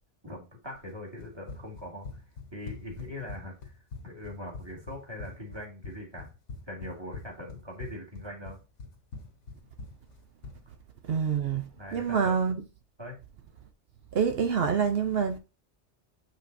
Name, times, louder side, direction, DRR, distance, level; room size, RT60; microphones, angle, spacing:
voice 1, 0.2-2.2 2.5-3.8 4.0-6.3 6.7-8.6 11.8-12.4 13.0-13.2, left 1 dB, 20° right, 2.0 m, -41 dB
Run, 1.2-10.6, left 4 dB, 85° left, 1.4 m, -44 dB
voice 2, 11.1-12.6 14.1-15.4, right 6 dB, 60° right, 0.8 m, -26 dB
7.2 x 5.2 x 2.6 m
omnidirectional pair, 1.2 m